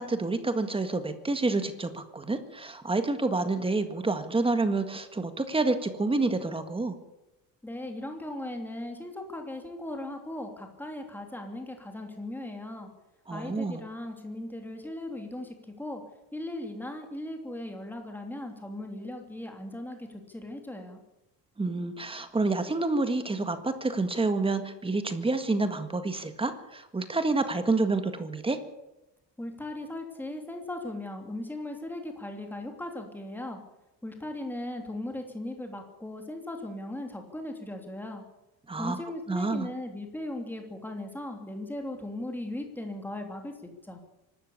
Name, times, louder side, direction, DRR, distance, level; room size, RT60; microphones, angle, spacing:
voice 1, 0.0-7.0 13.3-13.8 21.6-28.6 38.7-39.0 39.3-39.7, right 3 dB, 15° right, 8 dB, 1.7 m, -28 dB
voice 2, 7.6-12.9 13.3-15.5 15.8-16.0 16.3-21.0 29.4-33.6 34.0-38.2 38.8-43.5 43.9-44.0, left 1 dB, 5° left, 3 dB, 3.0 m, -38 dB
24.5 x 13.0 x 8.5 m, 0.96 s
cardioid pair, 170°, 40 cm